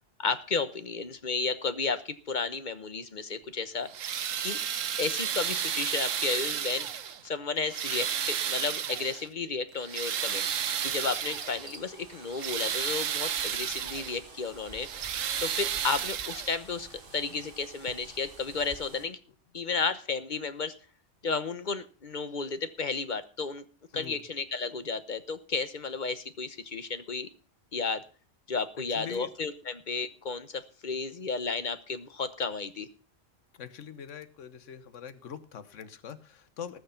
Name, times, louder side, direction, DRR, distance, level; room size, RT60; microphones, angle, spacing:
voice 1, 0.2-3.9 4.4-4.6 5.0-6.9 7.2-10.5 10.8-14.9 15.4-19.2 19.5-20.7 21.2-23.6 23.9-27.3 27.7-28.0 28.5-32.9, left 4 dB, 40° left, 11 dB, 1.0 m, -33 dB
sound 1, 3.8-7.3 7.6-9.3 9.7-11.7 12.1-14.2 14.7-16.8 17.9-18.0 18.6-18.7, right 8 dB, 75° right, 1.3 m, -32 dB
sound 2, 10.2-19.1, right 3 dB, 40° right, 1.8 m, -49 dB
voice 2, 28.9-29.3 33.6-36.8, left 8 dB, 70° left, 12 dB, 1.3 m, -43 dB
19.0 x 6.5 x 5.8 m, 0.38 s
omnidirectional pair, 1.3 m